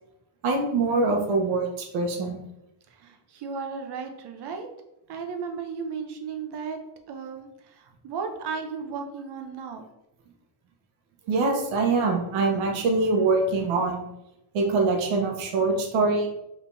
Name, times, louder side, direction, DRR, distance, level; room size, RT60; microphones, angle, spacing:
voice 1, 0.4-2.4 11.3-14.0 14.5-16.3, right 3 dB, 90° right, 2 dB, 1.1 m, -24 dB
voice 2, 2.9-4.7 5.1-6.8 7.1-9.8, right 5 dB, 55° right, 4 dB, 0.8 m, -35 dB
5.0 x 3.4 x 2.7 m, 0.89 s
cardioid pair, 120°, 47 cm